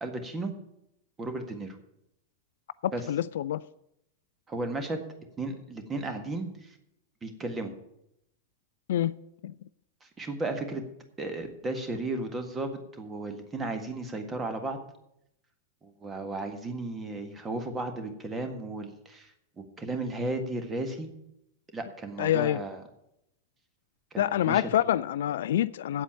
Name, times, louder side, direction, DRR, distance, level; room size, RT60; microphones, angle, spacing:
voice 1, 0.0-0.5 1.2-1.8 2.9-3.1 4.5-5.0 5.4-6.8 7.2-7.7 10.0-10.9 11.2-14.8 15.8-21.1 21.7-22.8 24.1-24.7, right 2 dB, 20° right, 1.7 m, -34 dB
voice 2, 2.8-3.6 8.9-9.1 9.4-9.5 22.2-22.6 24.2-26.0, left 11 dB, 60° left, 0.3 m, -26 dB
8.2 x 8.0 x 8.8 m
figure-of-eight pair, 90°, 0 cm